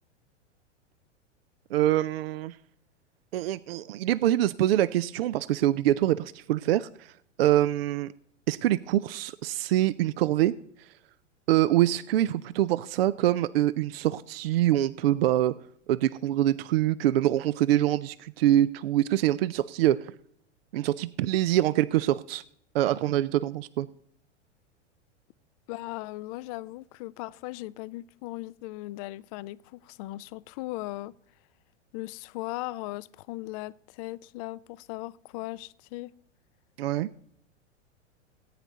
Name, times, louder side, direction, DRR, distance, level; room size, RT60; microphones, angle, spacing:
voice 1, 1.7-2.6 3.3-7.1 7.4-8.1 8.5-10.5 10.8-10.9 11.5-15.5 15.9-20.1 20.7-22.4 22.7-23.9 36.8-37.1, right 13 dB, 55° right, 0.5 m, -25 dB
voice 2, 25.7-31.1 31.9-36.1, left 18 dB, 30° left, 0.4 m, -38 dB
18.0 x 9.1 x 4.0 m
figure-of-eight pair, 100°, 36 cm